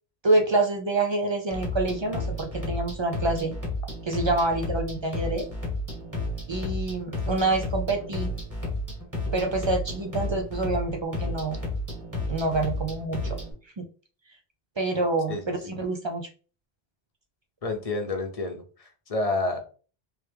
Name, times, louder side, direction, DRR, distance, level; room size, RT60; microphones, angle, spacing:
voice 1, 0.2-3.5 4.0-5.5 6.5-8.3 9.3-11.6 12.3-13.4 13.8-13.9 14.8-16.3, right 2 dB, 50° right, 4 dB, 0.3 m, -27 dB
sound 1, 1.5-13.5, left 1 dB, 15° right, 1.7 m, -32 dB
voice 2, 17.6-19.6, left 2 dB, 40° left, 4 dB, 0.6 m, -29 dB
3.2 x 3.2 x 3.3 m, 0.38 s
omnidirectional pair, 1.1 m